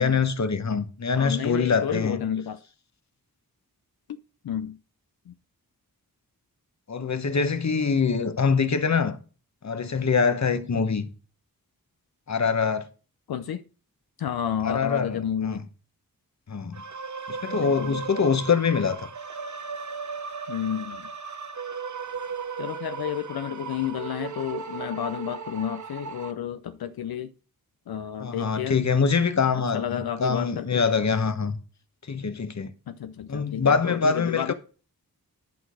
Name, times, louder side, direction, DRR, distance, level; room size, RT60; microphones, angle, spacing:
voice 1, 0.0-2.2 6.9-9.2 9.6-11.1 12.3-12.9 14.6-15.6 16.5-16.8 17.3-19.0 28.2-31.6 32.1-32.7 33.3-34.5, left 5 dB, 50° left, 1.0 m, -24 dB
voice 2, 1.2-2.6 4.4-4.8 5.3-5.4 13.3-13.6 14.2-15.6 17.5-18.0 20.5-21.1 22.6-27.3 27.9-28.8 29.5-30.8 32.9-34.5, left 9 dB, 80° left, 0.5 m, -31 dB
sound 1, 16.7-26.3, right 5 dB, 50° right, 0.8 m, -36 dB
11.0 x 3.9 x 6.3 m
wide cardioid pair, 75°, 37 cm